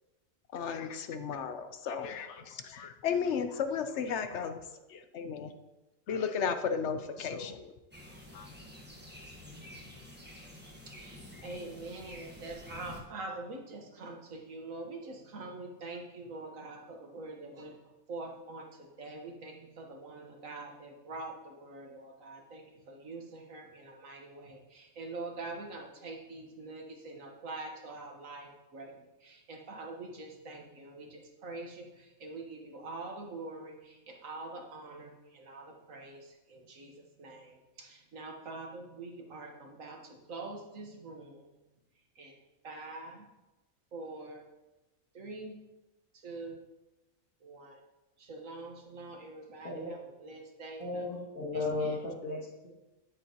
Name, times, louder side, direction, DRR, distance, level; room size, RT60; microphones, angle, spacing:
voice 1, 0.5-4.6 4.9-5.5 6.1-7.7 8.3-8.5, left 6 dB, 65° left, 8 dB, 0.9 m, -34 dB
sound 1, 7.9-13.0, left 1 dB, 10° right, 1.1 m, -49 dB
voice 2, 10.9-17.8 18.1-41.5 42.1-42.4 42.6-43.3 43.9-44.4 45.1-45.6 46.1-46.6 47.4-47.8 48.2-51.1 51.5-52.0, right 2 dB, 75° right, 2 dB, 1.7 m, -45 dB
voice 3, 50.8-52.7, left 2 dB, 85° left, -4 dB, 2.5 m, -35 dB
9.8 x 8.3 x 2.9 m, 1.0 s
omnidirectional pair, 1.4 m